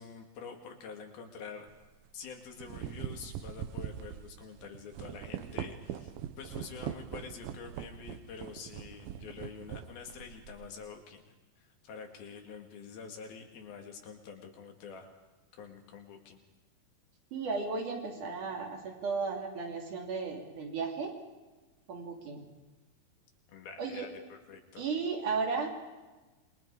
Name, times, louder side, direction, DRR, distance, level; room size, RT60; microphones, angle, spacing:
voice 1, 0.0-1.7 2.1-15.2 15.5-16.4 23.5-24.9, left 6 dB, 90° left, 3 dB, 4.2 m, -47 dB
sound 1, 1.7-1.9 2.4-10.8, right 10 dB, 80° right, 2.7 m, -42 dB
voice 2, 17.3-21.1 21.9-22.4 23.8-24.1 24.8-25.7, right 4 dB, 60° right, 1 dB, 4.3 m, -34 dB
27.5 x 22.5 x 4.9 m, 1.2 s
omnidirectional pair, 4.2 m